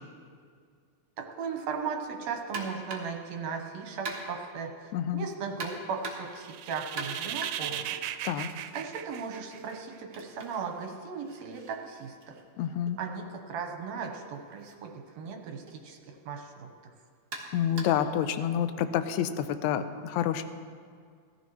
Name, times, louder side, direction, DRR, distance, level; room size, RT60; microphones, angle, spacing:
voice 1, 1.2-8.0 8.7-12.4 13.0-16.7, right 5 dB, 65° right, 4 dB, 2.1 m, -37 dB
sound 1, 2.5-3.2 4.1-4.5 5.6-6.4 7.0-8.7 9.1-12.9 14.0-14.2 14.6-14.7 15.7-15.8 17.3-18.1, right 2 dB, 40° right, 1.2 m, -42 dB
voice 2, 4.9-5.2 8.3-8.5 12.6-13.0 17.5-20.4, left 9 dB, 75° left, 10 dB, 1.9 m, -28 dB
sound 2, 6.4-10.0, right 12 dB, 85° right, 2.1 m, -37 dB
17.0 x 14.5 x 3.2 m, 2.1 s
omnidirectional pair, 3.6 m